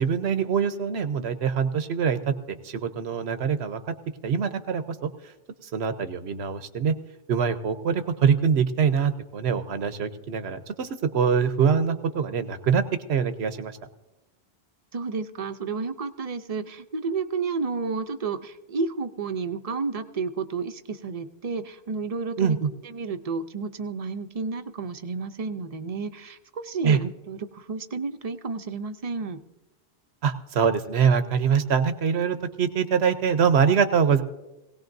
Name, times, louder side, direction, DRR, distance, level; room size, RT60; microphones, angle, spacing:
voice 1, 0.0-3.8 4.2-5.1 5.6-6.9 7.3-12.8 13.1-13.7 22.4-22.7 26.8-27.0 30.2-34.2, right 6 dB, 90° right, 10 dB, 1.1 m, -24 dB
voice 2, 14.9-22.6 22.8-29.4, right 4 dB, 40° right, 9 dB, 0.7 m, -31 dB
19.5 x 17.5 x 2.6 m, 0.99 s
omnidirectional pair, 1.1 m